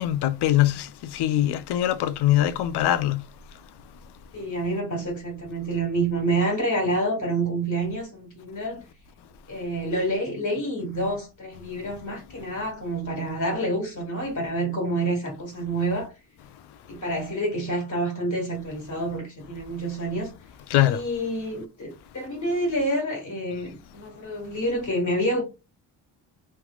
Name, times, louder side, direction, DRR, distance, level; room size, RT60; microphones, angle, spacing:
voice 1, 0.0-3.2 20.7-21.0, left 13 dB, 70° left, 0.5 m, -22 dB
voice 2, 4.3-8.8 9.5-16.1 16.9-20.3 20.7-25.4, right 1 dB, 45° left, 1.9 m, -28 dB
3.2 x 3.0 x 2.3 m
cardioid pair, 80°, 42 cm